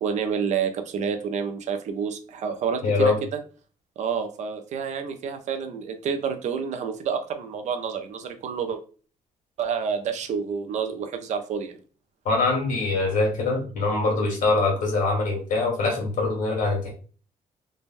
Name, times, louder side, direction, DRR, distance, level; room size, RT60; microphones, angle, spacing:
voice 1, 0.0-3.4 4.0-8.8 9.6-11.8, right 6 dB, 60° right, 7 dB, 0.5 m, -29 dB
voice 2, 2.8-3.2 12.2-16.9, left 3 dB, 70° left, 1 dB, 1.3 m, -23 dB
3.2 x 2.2 x 2.5 m, 0.40 s
cardioid pair, 135°, 13 cm